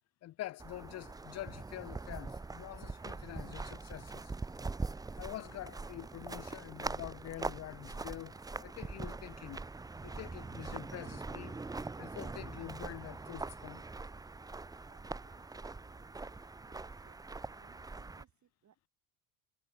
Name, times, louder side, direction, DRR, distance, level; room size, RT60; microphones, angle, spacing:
voice 1, 0.2-4.3 5.2-9.7 10.0-11.6 12.0-13.8, left 14 dB, 40° left, 0.6 m, -46 dB
sound 1, 0.6-18.2, right 3 dB, 10° right, 0.6 m, -43 dB
voice 2, 14.9-18.9, right 9 dB, 45° right, 7.3 m, -68 dB
supercardioid pair, 80°, 41 cm